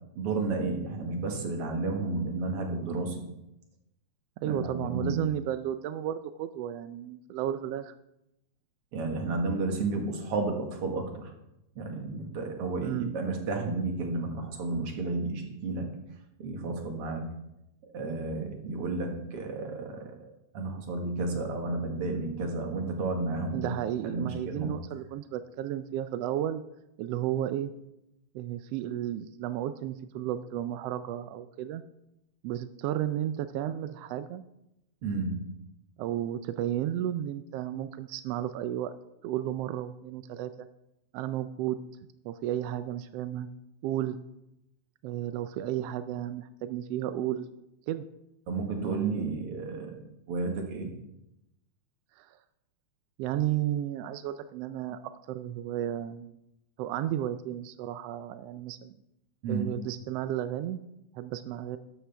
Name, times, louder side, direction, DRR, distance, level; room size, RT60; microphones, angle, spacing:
voice 1, 0.2-3.3 4.4-5.3 8.9-11.3 11.8-15.9 16.4-17.3 17.9-23.7 24.0-24.7 35.0-35.5 48.5-50.0 50.3-50.9 59.4-59.7, right 3 dB, 55° right, 3 dB, 2.4 m, -32 dB
voice 2, 4.4-7.9 12.8-13.1 23.5-26.6 27.0-27.7 28.3-31.8 32.4-34.4 36.0-38.9 39.2-40.7 41.1-41.8 42.2-43.5 43.8-44.2 45.0-47.5 47.9-48.0 48.8-49.4 52.2-52.4 53.2-55.0 55.3-56.3 56.8-59.0 59.5-60.8 61.1-61.8, right 11 dB, 80° right, 11 dB, 1.4 m, -33 dB
12.5 x 11.5 x 3.4 m, 0.86 s
omnidirectional pair, 3.3 m